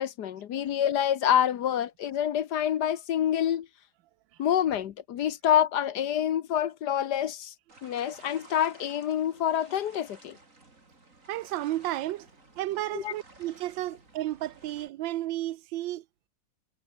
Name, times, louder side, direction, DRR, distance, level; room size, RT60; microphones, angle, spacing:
voice 1, 0.0-3.7 4.4-7.5 7.8-10.4 12.9-13.1, left 10 dB, 65° left, 1.4 m, -27 dB
sound 1, 7.7-14.9, right 2 dB, 40° right, 5.3 m, -55 dB
voice 2, 11.3-12.3 12.6-16.0, right 15 dB, 85° right, 1.4 m, -32 dB
omnidirectional pair, 2.0 m